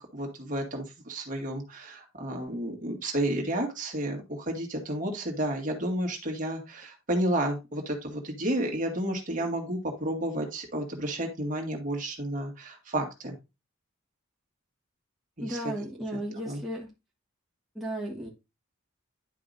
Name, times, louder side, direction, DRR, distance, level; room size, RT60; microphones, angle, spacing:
voice 1, 0.0-13.4 15.4-15.6 16.5-16.6, right 1 dB, 40° right, 1 dB, 1.8 m, -31 dB
voice 2, 15.4-16.9 17.7-18.3, right 1 dB, ahead, -4 dB, 1.4 m, -34 dB
11.0 x 4.8 x 2.6 m, 0.25 s
head